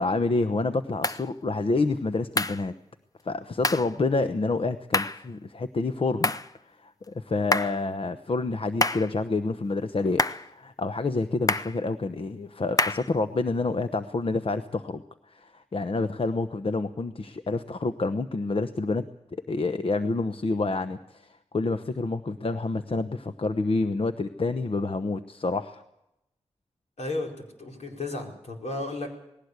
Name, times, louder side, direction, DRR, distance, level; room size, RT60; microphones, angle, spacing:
voice 1, 0.0-2.7 3.2-6.3 6.6-19.0 19.3-25.8, left 3 dB, 55° left, 9 dB, 0.9 m, -28 dB
sound 1, 1.0-1.2 2.4-2.6 3.6-3.9 4.9-5.2 6.2-6.5 7.5-7.8 8.8-9.1 10.2-10.5 11.5-11.8 12.8-13.1, left 2 dB, 30° left, 0.8 m, -26 dB
voice 2, 27.0-27.3 27.6-29.1, left 2 dB, 75° left, 1 dB, 4.7 m, -33 dB
19.5 x 16.5 x 8.2 m, 0.87 s
cardioid pair, 50°, 12 cm